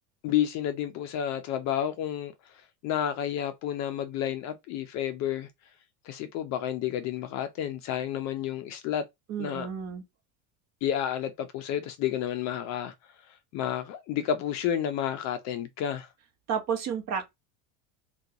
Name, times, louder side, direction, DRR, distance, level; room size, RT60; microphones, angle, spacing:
voice 1, 0.2-2.3 2.8-5.5 6.0-9.0 9.4-9.7 10.8-12.9 13.5-16.1, left 10 dB, 40° left, 0.4 m, -30 dB
voice 2, 9.3-10.0 16.5-17.3, right 7 dB, 40° right, 1.0 m, -31 dB
3.6 x 2.3 x 2.8 m
supercardioid pair, 135°, 43 cm